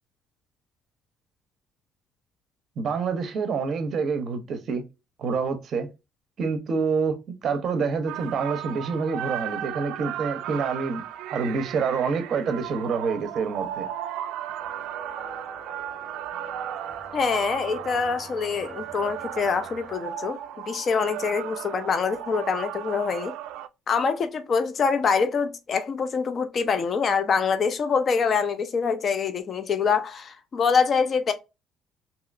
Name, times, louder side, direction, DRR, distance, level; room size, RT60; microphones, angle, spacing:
voice 1, 2.8-4.8 5.2-5.9 6.4-11.0 11.3-13.9, right 5 dB, 35° right, 0.6 m, -27 dB
sound 1, 8.1-23.7, right 10 dB, 75° right, 0.3 m, -35 dB
sound 2, 14.6-20.0, equal, ahead, 0.8 m, -46 dB
voice 2, 17.1-20.4 20.7-23.4 23.9-31.3, left 5 dB, 30° left, 0.3 m, -25 dB
3.0 x 2.8 x 2.4 m
cardioid pair, 175°, 0 cm